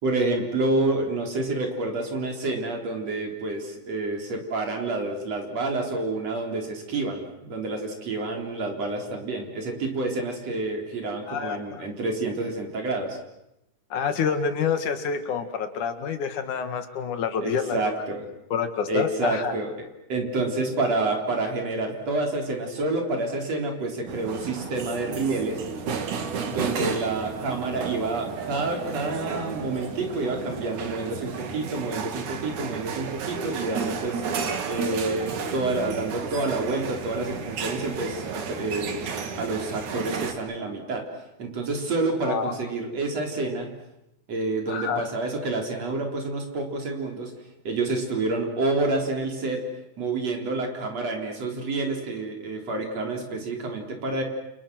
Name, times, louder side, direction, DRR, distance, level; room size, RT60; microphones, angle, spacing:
voice 1, 0.0-13.2 17.4-18.2 18.9-19.7 20.1-25.6 26.5-34.2 34.7-39.0 39.3-41.0 41.4-43.7 44.3-47.3 47.6-49.6 50.0-54.2, right 2 dB, 55° right, 2 dB, 4.9 m, -28 dB
voice 2, 11.3-11.8 13.9-17.9 18.5-19.6 42.2-42.6 44.7-45.1, left 6 dB, 75° left, 8 dB, 3.4 m, -28 dB
sound 1, 24.1-40.3, right 6 dB, 70° right, 3.4 m, -33 dB
29.0 x 29.0 x 6.2 m, 0.88 s
omnidirectional pair, 3.5 m